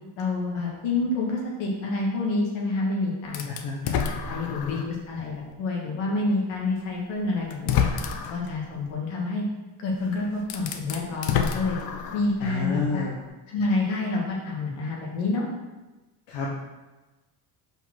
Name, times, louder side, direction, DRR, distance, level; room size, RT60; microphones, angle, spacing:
voice 1, 0.2-3.4 3.8-7.9 8.3-9.4 9.8-11.8 12.1-13.1 13.5-15.5, left 3 dB, 85° left, -2 dB, 2.0 m, -28 dB
sound 1, 3.3-5.0 5.5-5.6 6.8-6.9 7.5-8.5 9.9-10.0 10.4-12.4, left 7 dB, 50° left, 0.7 m, -28 dB
voice 2, 3.5-3.8 4.2-4.8 12.4-13.2 16.3-16.5, left 3 dB, 70° left, -3 dB, 1.2 m, -31 dB
5.4 x 4.1 x 6.1 m, 1.1 s
cardioid pair, 150°, 46 cm